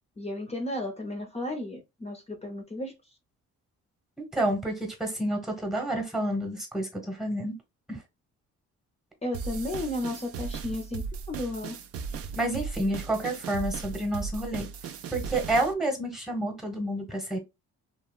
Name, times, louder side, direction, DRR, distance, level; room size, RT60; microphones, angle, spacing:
voice 1, 0.2-2.9 9.2-11.7, left 1 dB, 20° left, 0.6 m, -33 dB
voice 2, 4.2-7.6 7.9-8.0 12.3-14.7 15.1-17.4, right 1 dB, ahead, 1.0 m, -29 dB
sound 1, 9.3-15.7, right 5 dB, 50° right, 0.4 m, -37 dB
2.8 x 2.4 x 2.2 m
cardioid pair, 90°, 30 cm